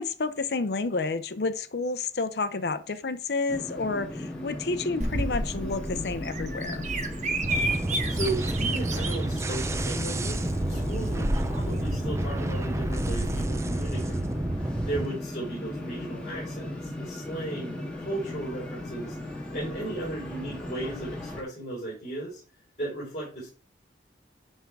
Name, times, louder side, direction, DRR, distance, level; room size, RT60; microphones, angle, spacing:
voice 1, 0.0-6.9, left 3 dB, 65° left, 0.6 m, -30 dB
sound 1, 3.5-21.4, left 1 dB, 5° left, 1.6 m, -37 dB
Bird vocalization bird call bird song, 5.0-13.5, right 1 dB, 40° right, 1.1 m, -32 dB
sound 2, 7.4-15.1, right 1 dB, 15° right, 0.4 m, -30 dB
voice 2, 7.9-14.2 14.6-22.4 22.8-23.5, right 2 dB, 40° left, 4.6 m, -36 dB
10.5 x 3.6 x 4.6 m
head